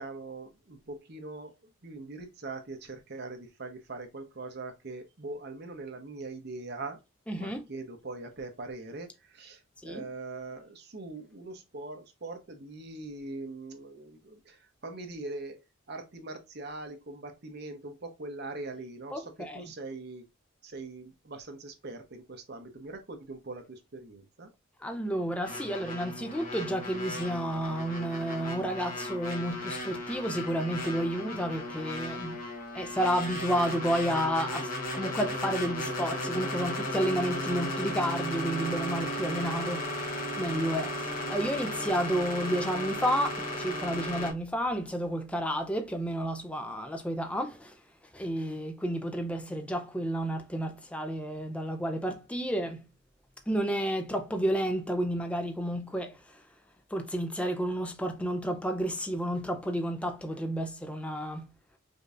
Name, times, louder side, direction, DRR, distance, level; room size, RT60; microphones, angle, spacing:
voice 1, 0.0-1.5 1.8-7.0 7.4-15.6 15.9-20.3 20.6-24.5, right 3 dB, 55° right, 0.9 m, -42 dB
voice 2, 7.3-7.6 9.8-10.1 19.1-19.7 24.8-32.5 32.7-39.9 40.3-47.8 48.1-52.9 53.5-56.4 56.9-61.5, equal, 5° left, 0.4 m, -31 dB
sound 1, 25.4-44.3, left 1 dB, 45° left, 1.0 m, -35 dB
5.2 x 2.7 x 2.5 m
head